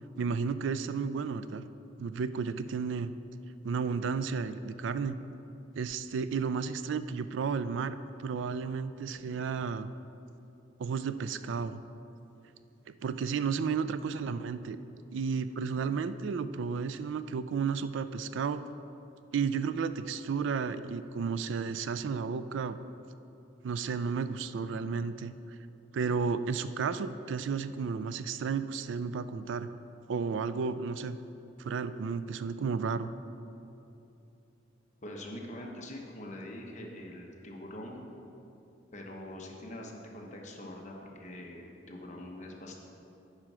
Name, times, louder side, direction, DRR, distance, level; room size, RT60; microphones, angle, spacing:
voice 1, 0.2-1.6 2.0-3.1 3.6-5.2 5.7-9.9 10.8-11.8 13.0-14.8 15.1-18.6 19.3-22.8 23.6-25.3 25.9-29.7 30.1-31.2 31.6-33.1, right 5 dB, 70° right, 13 dB, 0.3 m, -32 dB
voice 2, 35.0-38.1 38.9-42.8, left 1 dB, 40° left, 0 dB, 1.0 m, -44 dB
9.6 x 4.5 x 6.1 m, 2.7 s
head